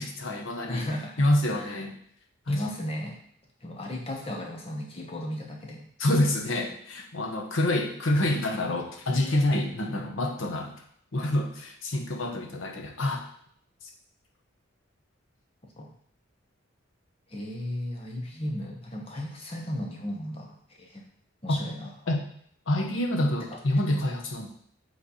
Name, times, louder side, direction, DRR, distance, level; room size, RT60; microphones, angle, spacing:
voice 1, 0.0-0.9 1.2-2.0 2.5-2.6 6.0-10.7 11.1-13.2 21.5-21.6 22.1-22.3 22.7-24.5, left 1 dB, 70° left, 3 dB, 1.0 m, -27 dB
voice 2, 0.7-1.2 1.5-1.7 2.5-3.2 3.6-5.8 15.8-15.9 17.3-21.0 21.4-21.9, left 1 dB, 30° left, 0 dB, 1.1 m, -35 dB
8.1 x 3.3 x 4.1 m, 0.64 s
head